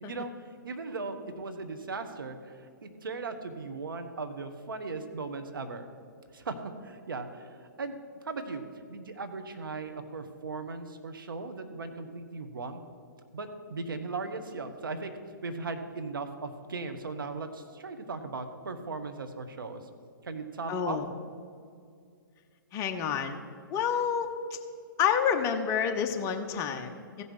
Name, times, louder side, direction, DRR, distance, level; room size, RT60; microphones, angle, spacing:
voice 1, 0.0-0.3 0.6-5.9 6.3-8.0 8.2-8.6 8.9-12.8 13.3-15.1 15.4-19.8 20.2-21.0, right 3 dB, 75° right, 8 dB, 1.1 m, -38 dB
voice 2, 20.7-21.0 22.7-23.4 23.7-24.3 25.0-27.2, left 7 dB, 25° left, 6 dB, 0.8 m, -28 dB
15.0 x 5.5 x 6.4 m, 2.3 s
figure-of-eight pair, 125°, 11 cm